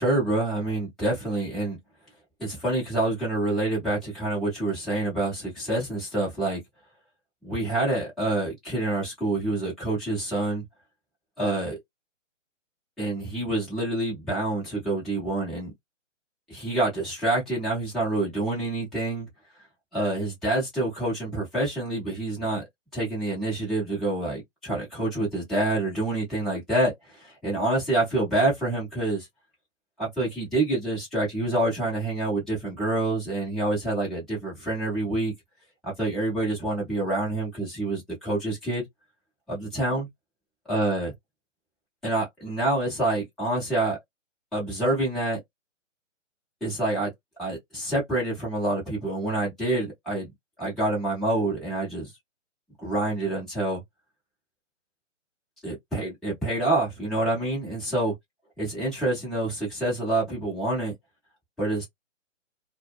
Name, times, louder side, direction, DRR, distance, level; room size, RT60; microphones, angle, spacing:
voice 1, 0.0-1.8 2.4-6.6 7.4-10.6 11.4-11.8 13.0-15.7 16.5-19.3 19.9-22.6 22.9-29.3 30.0-35.3 35.8-38.8 39.5-40.1 40.7-41.1 42.0-44.0 44.5-45.4 46.6-47.1 47.4-50.3 50.6-52.1 52.8-53.8 55.6-58.1 58.6-60.9 61.6-61.8, right 2 dB, ahead, 0.6 m, -27 dB
2.1 x 2.0 x 3.4 m
hypercardioid pair, 145°, 38 cm